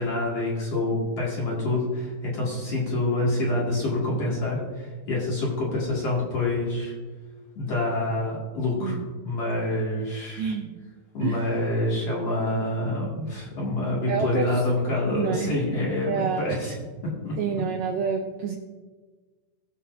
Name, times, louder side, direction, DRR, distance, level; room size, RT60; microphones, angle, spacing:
voice 1, 0.0-6.9 7.6-9.0 9.2-10.5 11.1-16.7 17.2-17.3, left 2 dB, 45° left, -5 dB, 3.1 m, -27 dB
voice 2, 10.4-10.8 11.2-11.5 14.1-14.6 15.1-15.6 16.1-16.5 17.4-18.6, right 6 dB, 80° right, 3 dB, 2.0 m, -28 dB
20.0 x 7.3 x 2.7 m, 1.4 s
omnidirectional pair, 4.5 m